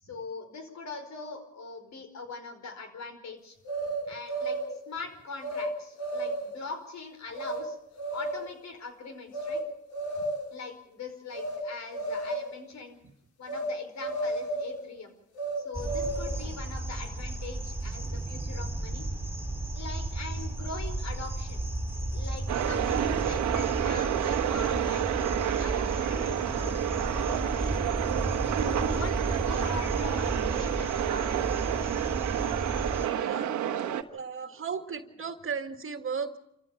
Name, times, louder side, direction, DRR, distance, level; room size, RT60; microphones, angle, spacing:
voice 1, 0.0-3.6 4.1-7.8 8.1-9.6 10.5-13.0 13.4-15.1 15.6-19.1 19.7-21.6 22.1-27.8 28.5-31.8, left 4 dB, 65° left, 7 dB, 5.0 m, -42 dB
sound 1, 3.6-4.8 5.4-5.7 6.0-6.6 7.4-7.6 8.0-8.5 9.3-9.6 9.9-10.6 11.3-11.6 11.9-12.5 13.5-13.7 14.0-14.8 15.3-16.4, right 2 dB, 90° left, 5.3 m, -32 dB
sound 2, 15.7-33.1, right 2 dB, 10° right, 3.5 m, -34 dB
sound 3, 22.5-34.0, right 10 dB, 70° right, 1.4 m, -29 dB
voice 2, 33.0-33.5 34.1-36.4, right 6 dB, 45° right, 8 dB, 1.9 m, -35 dB
27.0 x 15.0 x 7.2 m, 0.81 s
cardioid pair, 90°, 30 cm